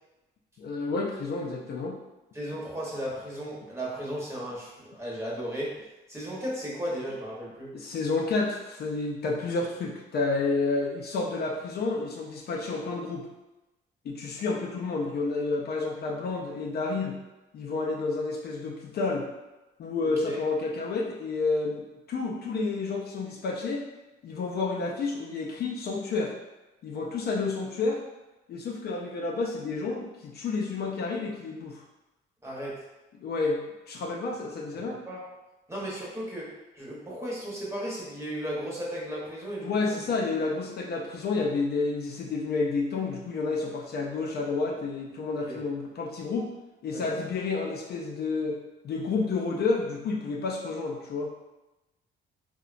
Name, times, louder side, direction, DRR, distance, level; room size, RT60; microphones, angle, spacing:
voice 1, 0.6-2.0 7.7-13.3 14.0-17.2 17.5-19.3 19.8-21.8 22.1-23.8 24.2-26.3 26.8-28.0 28.5-31.8 33.2-33.6 33.9-35.0 39.6-46.5 46.8-48.6 48.8-51.3, left 3 dB, 55° left, -1 dB, 0.4 m, -30 dB
voice 2, 2.3-5.7 6.1-7.7 20.0-20.4 32.4-32.8 34.7-35.2 35.7-40.0 45.4-45.6 46.9-47.1, equal, 15° right, -6 dB, 0.9 m, -35 dB
2.8 x 2.1 x 2.4 m, 1.0 s
cardioid pair, 90°, 20 cm